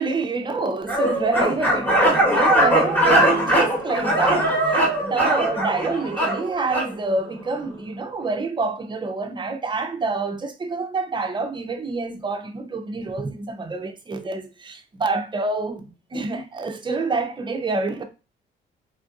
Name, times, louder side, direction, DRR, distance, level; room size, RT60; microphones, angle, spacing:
voice 1, 0.0-18.0, right 3 dB, 25° right, 0.5 m, -27 dB
sound 1, 0.9-6.9, right 1 dB, 10° left, 1.2 m, -20 dB
3.6 x 2.5 x 2.4 m
cardioid pair, 90°, 20 cm